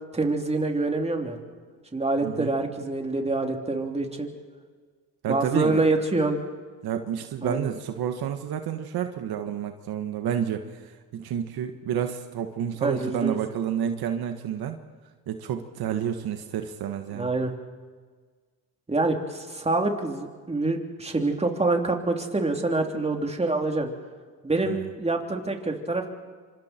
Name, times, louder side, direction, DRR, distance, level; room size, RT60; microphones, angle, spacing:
voice 1, 0.1-1.4 1.9-4.3 5.3-6.4 7.4-7.7 12.8-13.4 17.1-17.5 18.9-23.9 24.4-26.1, right 2 dB, 15° right, 3 dB, 3.4 m, -26 dB
voice 2, 2.2-2.5 5.2-5.8 6.8-14.8 15.3-17.3 24.6-24.9, right 9 dB, 65° right, 6 dB, 1.7 m, -30 dB
27.0 x 25.5 x 4.5 m, 1.5 s
supercardioid pair, 85°, 40 cm